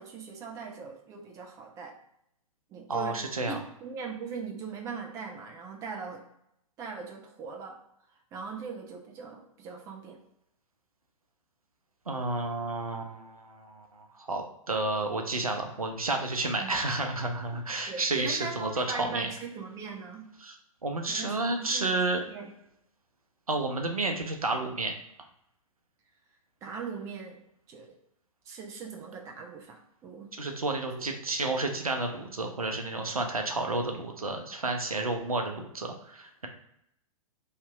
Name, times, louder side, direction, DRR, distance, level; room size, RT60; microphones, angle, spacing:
voice 1, 0.0-2.0 2.7-6.2 6.8-7.8 8.3-10.2 16.6-16.8 17.9-20.3 21.1-22.5 26.6-27.4 27.7-27.9 28.5-30.3 30.8-31.0, right 5 dB, 15° right, 1 dB, 0.5 m, -40 dB
voice 2, 2.9-3.6 12.1-19.3 20.4-20.5 20.8-22.2 23.5-25.0 30.4-36.5, right 2 dB, 80° right, 4 dB, 0.7 m, -31 dB
3.3 x 2.9 x 4.4 m, 0.76 s
figure-of-eight pair, 110°, 18 cm